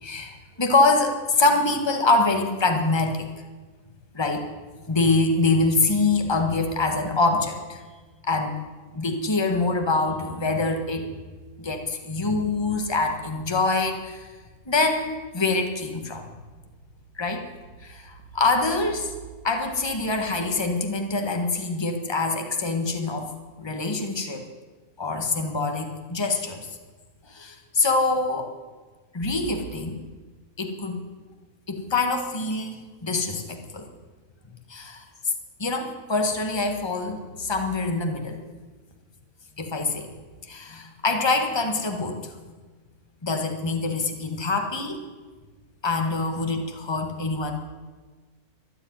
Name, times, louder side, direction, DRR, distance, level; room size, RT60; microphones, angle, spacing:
voice 1, 0.0-3.3 4.1-4.5 4.9-7.8 8.2-8.5 8.9-11.1 11.6-14.3 14.6-16.2 17.2-17.5 17.8-19.1 19.4-23.3 23.6-24.5 25.0-26.7 27.3-28.5 29.1-30.0 30.6-31.0 31.7-33.9 34.7-35.0 35.6-38.4 39.6-40.1 40.4-42.3 43.2-45.0 45.8-47.5, left 3 dB, 15° left, 4 dB, 1.5 m, -25 dB
14.0 x 10.5 x 9.4 m, 1.4 s
omnidirectional pair, 1.6 m